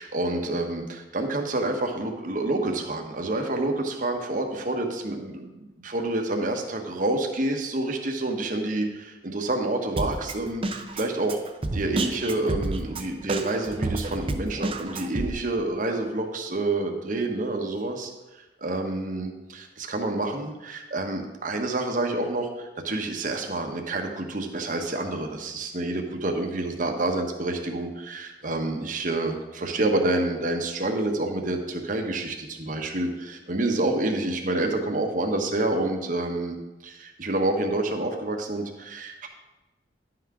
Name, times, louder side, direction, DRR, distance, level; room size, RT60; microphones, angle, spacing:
voice 1, 0.0-11.4 11.7-18.1 18.6-36.6 36.8-39.3, right 2 dB, 45° right, 3 dB, 1.1 m, -28 dB
Drum kit, 10.0-15.3, right 2 dB, 30° right, 0.6 m, -30 dB
11.0 x 5.9 x 4.8 m, 1.1 s
head